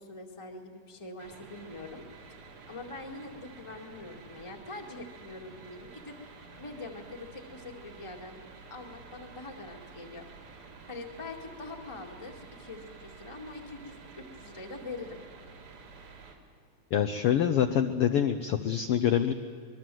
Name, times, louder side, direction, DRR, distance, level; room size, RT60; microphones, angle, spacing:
voice 1, 0.0-2.0 2.7-6.1 6.5-8.4 8.7-10.3 10.9-15.2, left 2 dB, 15° left, 2 dB, 1.5 m, -44 dB
sound 1, 1.2-16.4, right 4 dB, 75° right, 4.0 m, -50 dB
voice 2, 16.9-19.3, left 9 dB, 70° left, 7 dB, 1.4 m, -25 dB
24.5 x 21.0 x 7.7 m, 2.3 s
omnidirectional pair, 3.5 m